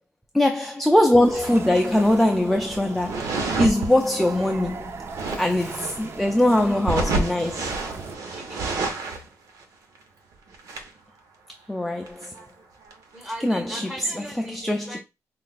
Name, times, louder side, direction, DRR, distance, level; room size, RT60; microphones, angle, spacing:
voice 1, 0.3-4.9 5.4-7.7 11.7-12.3 13.4-13.9 14.5-15.0, left 1 dB, 5° left, 0.4 m, -21 dB
sound 1, 1.1-8.2, right 4 dB, 45° right, 0.6 m, -38 dB
sound 2, 3.0-3.9 5.1-5.5 6.9-9.3 9.6-9.7 9.9-10.0 10.5-10.9 12.1-12.4 12.9-13.0 13.2-13.7, right 3 dB, 80° right, 1.0 m, -28 dB
voice 2, 5.3-5.9 8.3-8.7 13.1-15.0, equal, 20° right, 2.2 m, -39 dB
5.8 x 2.4 x 2.4 m
cardioid pair, 125°, 6 cm